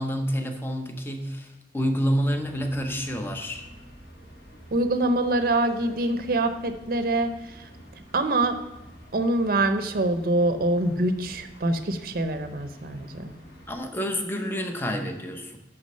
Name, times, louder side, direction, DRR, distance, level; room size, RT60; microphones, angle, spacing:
voice 1, 0.0-3.7 13.7-15.6, equal, 15° left, 5 dB, 0.6 m, -28 dB
sound 1, 2.2-13.8, equal, 60° left, 1.3 m, -49 dB
voice 2, 4.7-7.7 8.1-8.6 9.1-13.4, right 2 dB, 55° right, 8 dB, 0.6 m, -25 dB
6.2 x 5.9 x 5.5 m, 1.0 s
head